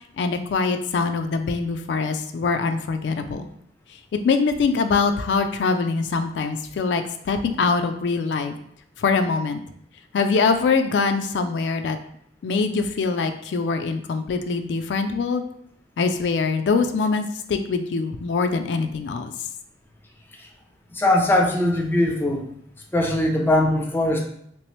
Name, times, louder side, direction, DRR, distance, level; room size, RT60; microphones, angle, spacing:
voice 1, 0.2-3.5 4.1-8.6 9.0-9.6 10.1-12.0 12.4-15.4 16.0-19.3, left 4 dB, 75° left, 7 dB, 0.3 m, -23 dB
voice 2, 20.9-22.5 22.9-24.2, left 1 dB, 10° left, 1 dB, 0.5 m, -20 dB
3.2 x 3.0 x 3.0 m, 0.69 s
head